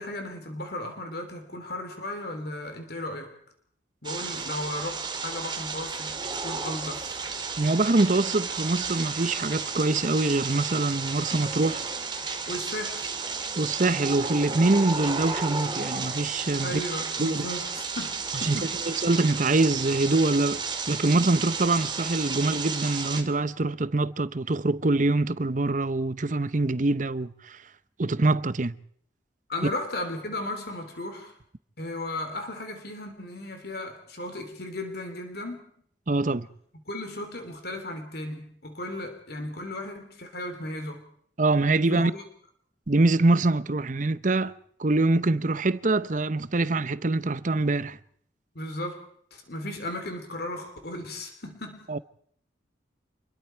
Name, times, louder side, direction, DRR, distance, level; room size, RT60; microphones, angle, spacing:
voice 1, 0.0-3.3 4.0-6.1 6.4-7.0 12.5-13.2 16.6-18.7 29.5-31.3 31.8-35.6 36.9-41.1 41.9-42.2 48.5-49.0 49.3-51.9, left 1 dB, 55° left, 3.4 m, -35 dB
sound 1, 4.0-23.2, right 5 dB, 25° right, 2.4 m, -33 dB
voice 2, 7.6-11.8 13.6-16.8 17.2-17.5 18.4-20.6 20.9-27.6 28.0-28.8 36.1-36.5 41.4-42.1 42.9-44.5 44.8-48.0 51.9-52.0, right 2 dB, 40° right, 0.8 m, -24 dB
28.0 x 22.0 x 4.6 m
head